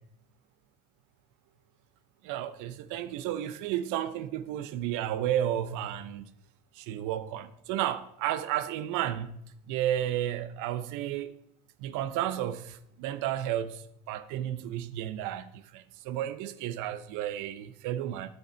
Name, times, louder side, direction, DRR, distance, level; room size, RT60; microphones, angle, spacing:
voice 1, 2.2-6.3 6.7-9.4 9.7-11.4 11.8-18.3, right 11 dB, 70° right, 0.8 m, -32 dB
9.4 x 7.9 x 4.5 m
supercardioid pair, 90°, 32 cm